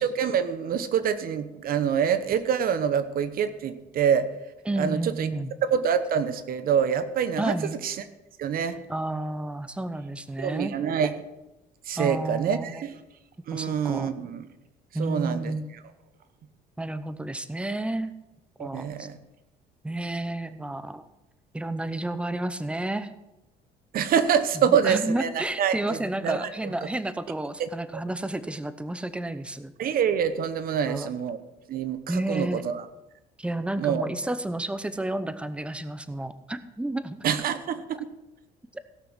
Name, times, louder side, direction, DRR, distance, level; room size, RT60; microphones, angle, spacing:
voice 1, 0.0-4.3 4.8-5.3 5.7-7.6 7.8-7.9 8.4-8.8 10.4-11.2 11.9-12.9 13.5-14.5 15.0-15.5 18.6-19.2 23.9-26.4 27.6-27.7 29.8-31.4 31.7-32.8 33.8-34.0 37.2-38.0, right 8 dB, 60° right, 12 dB, 1.1 m, -26 dB
voice 2, 4.6-5.5 7.4-7.8 8.9-10.7 12.0-12.8 13.5-14.1 14.9-15.7 16.8-18.1 18.6-19.1 19.8-21.0 21.5-23.1 24.6-29.7 30.9-31.1 32.1-32.6 33.4-37.2, right 1 dB, 5° right, 12 dB, 0.7 m, -31 dB
16.5 x 6.0 x 6.1 m, 0.96 s
cardioid pair, 110°, 17 cm